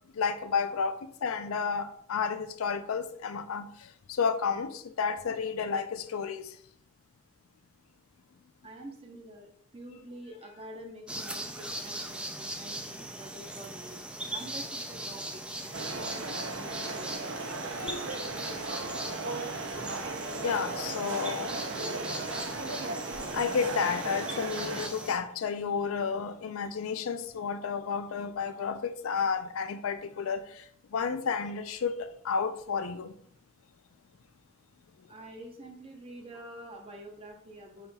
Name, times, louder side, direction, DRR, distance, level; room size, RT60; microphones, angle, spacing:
voice 1, 0.1-6.6 17.8-18.0 18.4-18.5 20.4-21.5 23.3-33.1, left 6 dB, 85° left, 0.4 m, -31 dB
voice 2, 8.6-14.0 14.3-17.3 35.1-37.9, right 1 dB, 30° right, 0.8 m, -47 dB
sound 1, 11.1-25.2, right 1 dB, 5° right, 0.3 m, -40 dB
sound 2, 15.7-24.9, right 3 dB, 60° right, 0.5 m, -36 dB
5.5 x 4.2 x 2.3 m
head